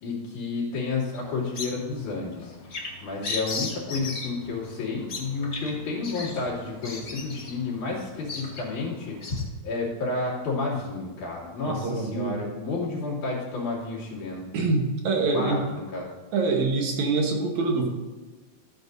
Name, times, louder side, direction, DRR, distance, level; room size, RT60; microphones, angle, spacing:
voice 1, 0.0-2.6 3.0-9.2 9.6-14.5 15.3-16.1, left 3 dB, 80° left, -5 dB, 4.1 m, -31 dB
Bird vocalization bird call bird song, 1.1-9.4, left 4 dB, 45° left, 0.9 m, -37 dB
voice 2, 11.7-12.4 14.5-15.6 16.3-17.9, right 3 dB, 70° right, 2 dB, 2.5 m, -25 dB
14.5 x 8.7 x 2.7 m, 1.2 s
omnidirectional pair, 3.5 m